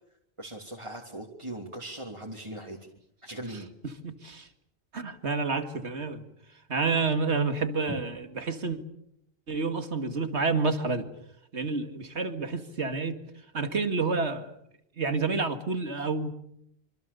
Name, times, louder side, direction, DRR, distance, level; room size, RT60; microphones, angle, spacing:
voice 1, 0.4-2.8 3.2-3.7, right 1 dB, 25° right, 3.2 m, -39 dB
voice 2, 3.5-4.5 4.9-6.2 6.7-8.8 9.5-11.1 11.5-13.1 13.5-14.5 15.0-16.3, right 4 dB, 90° right, 2.5 m, -29 dB
27.0 x 26.0 x 7.0 m
omnidirectional pair, 1.1 m